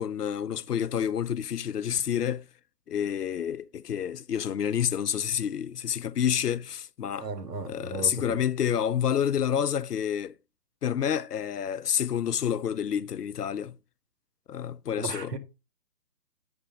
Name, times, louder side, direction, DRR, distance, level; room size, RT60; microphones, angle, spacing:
voice 1, 0.0-2.5 2.9-7.3 7.7-10.3 10.8-13.8 14.5-15.3, left 9 dB, 70° left, 0.6 m, -28 dB
voice 2, 7.2-8.4 15.0-15.4, right 3 dB, 75° right, 1.6 m, -35 dB
8.7 x 3.3 x 5.0 m
hypercardioid pair, 180°, 49 cm